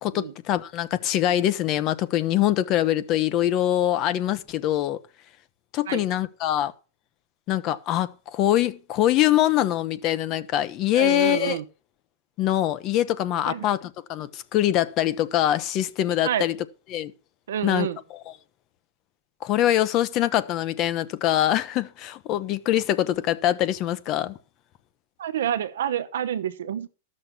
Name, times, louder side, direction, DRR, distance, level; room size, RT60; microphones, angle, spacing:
voice 1, 0.0-5.0 5.7-6.7 7.5-11.6 12.4-16.6 16.9-17.1 17.6-18.3 19.4-24.4, left 12 dB, 40° left, 0.8 m, -24 dB
voice 2, 10.9-11.6 13.5-13.6 16.2-16.5 17.5-18.0 25.2-26.9, right 10 dB, 80° right, 1.0 m, -28 dB
12.5 x 6.5 x 6.0 m
hypercardioid pair, 140°, 0 cm